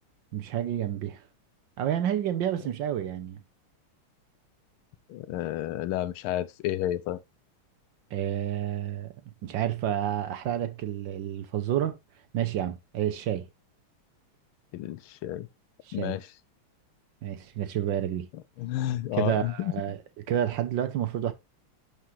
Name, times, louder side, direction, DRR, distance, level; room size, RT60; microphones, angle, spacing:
voice 1, 0.3-1.2 1.8-3.4 8.1-9.1 9.4-12.0 12.3-13.5 15.9-16.2 17.2-18.3 19.1-20.0 20.3-21.3, right 10 dB, 65° right, 1.4 m, -29 dB
voice 2, 5.1-7.2 14.7-15.5 15.9-16.3 18.3-19.7, left 13 dB, 80° left, 1.5 m, -31 dB
11.5 x 5.0 x 3.1 m
omnidirectional pair, 2.4 m